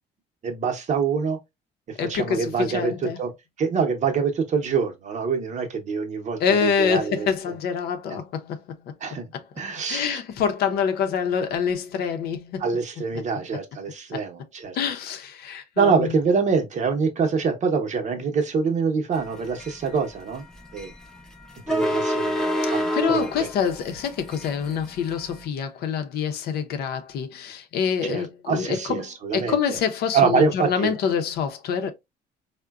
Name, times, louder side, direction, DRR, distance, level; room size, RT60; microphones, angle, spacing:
voice 1, 0.4-1.4 2.0-3.3 3.6-7.3 9.0-9.3 9.6-10.2 12.6-14.8 15.8-20.4 20.7-20.9 21.7-23.5 28.0-29.6 30.1-30.9, right 5 dB, 45° right, 0.8 m, -25 dB
voice 2, 2.0-3.2 6.4-8.9 9.3-9.4 9.9-12.6 14.1-14.2 14.7-16.2 22.6-31.9, left 7 dB, 70° left, 0.6 m, -26 dB
sound 1, 19.2-25.4, equal, 5° left, 0.6 m, -28 dB
3.6 x 2.1 x 2.3 m
cardioid pair, 110°, 17 cm